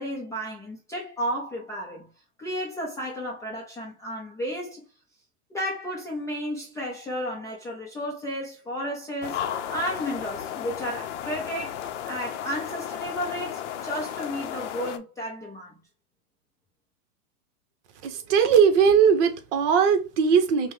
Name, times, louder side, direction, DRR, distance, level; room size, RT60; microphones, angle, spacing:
voice 1, 0.0-2.1 2.4-4.8 5.5-9.4 9.7-11.8 12.1-15.7, equal, 5° left, 0.4 m, -33 dB
sound 1, 9.2-15.0, left 9 dB, 50° left, 0.6 m, -34 dB
voice 2, 18.0-20.7, right 6 dB, 50° right, 0.9 m, -19 dB
5.3 x 2.2 x 3.2 m
hypercardioid pair, 125°, 45 cm